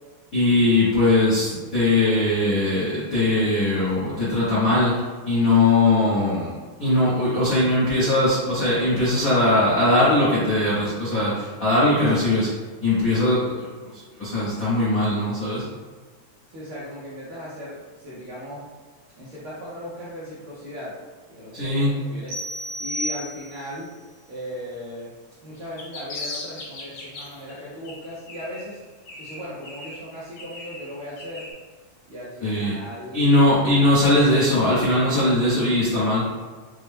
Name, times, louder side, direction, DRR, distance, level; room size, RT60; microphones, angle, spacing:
voice 1, 0.3-5.0 5.2-6.5 6.8-12.5 12.8-15.6 21.5-21.9 32.4-32.7 33.1-36.2, left 2 dB, 80° left, -11 dB, 0.7 m, -20 dB
voice 2, 16.5-18.6 19.2-20.9 21.3-23.9 24.3-25.1 25.4-28.8 29.2-31.4 32.1-33.5, equal, 75° right, -9 dB, 1.2 m, -37 dB
sound 1, 22.3-23.8, equal, 55° right, 1.6 m, -32 dB
sound 2, 25.6-27.5 27.8-28.8 29.0-31.5, left 2 dB, 65° left, 1.5 m, -38 dB
5.8 x 2.1 x 3.3 m, 1.4 s
omnidirectional pair, 3.4 m